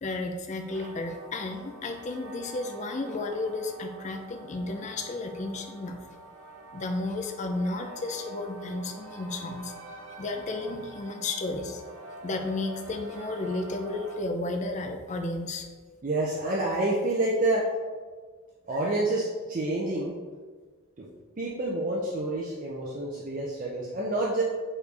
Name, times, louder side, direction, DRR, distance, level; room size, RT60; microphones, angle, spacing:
voice 1, 0.0-6.0 6.7-9.7 10.2-11.8 12.2-15.7, left 2 dB, 35° left, 5 dB, 0.4 m, -33 dB
sound 1, 0.7-14.2, right 2 dB, 70° right, 0.8 m, -46 dB
voice 2, 16.0-17.7 18.7-20.1 21.0-21.1 21.4-24.4, right 2 dB, 35° right, -4 dB, 0.5 m, -28 dB
5.0 x 3.2 x 3.3 m, 1.5 s
head